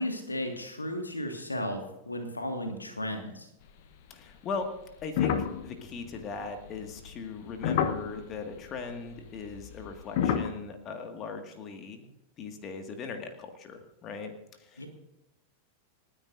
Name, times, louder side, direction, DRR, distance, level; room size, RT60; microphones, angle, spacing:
voice 1, 0.0-3.5 14.8-14.9, left 1 dB, 80° left, 5 dB, 1.9 m, -34 dB
voice 2, 4.1-4.7 5.0-5.3 5.6-12.1 12.4-14.3 14.6-14.9, left 5 dB, 30° left, 5 dB, 2.0 m, -39 dB
sound 1, 5.0-8.4 9.4-10.5, left 8 dB, 50° left, 1.1 m, -29 dB
29.5 x 9.9 x 2.7 m, 0.92 s
figure-of-eight pair, 90°, 0 cm